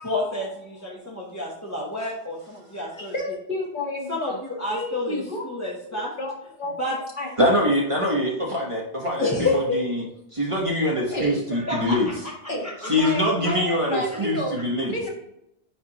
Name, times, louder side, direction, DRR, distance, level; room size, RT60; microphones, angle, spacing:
voice 1, 0.0-3.1 4.1-6.1 6.8-7.0 9.2-9.8 10.8-10.9 11.5-12.1 12.6-13.1, left 2 dB, 15° left, -6 dB, 1.0 m, -29 dB
voice 2, 3.0-4.4 4.7-5.4 5.9-6.3 6.6-6.7 7.2-7.3 11.1-11.4 12.5-14.6 14.9-15.1, left 1 dB, 50° left, -2 dB, 1.5 m, -30 dB
voice 3, 7.4-10.0 10.3-12.1 12.8-14.9, left 1 dB, 30° right, -2 dB, 1.1 m, -24 dB
9.7 x 3.4 x 2.9 m, 0.81 s
omnidirectional pair, 1.1 m